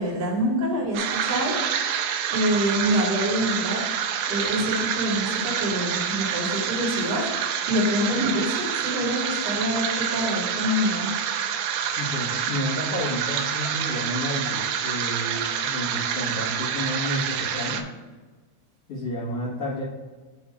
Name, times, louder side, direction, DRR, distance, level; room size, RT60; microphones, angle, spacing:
voice 1, 0.0-1.6 2.3-3.8 4.3-7.3 7.7-11.1, equal, 35° right, -6 dB, 1.6 m, -26 dB
sound 1, 0.9-17.8, right 8 dB, 85° right, 2.5 m, -27 dB
voice 2, 11.8-17.8 18.9-19.8, left 1 dB, 60° left, -11 dB, 1.6 m, -31 dB
8.0 x 2.8 x 6.0 m, 1.3 s
omnidirectional pair, 5.5 m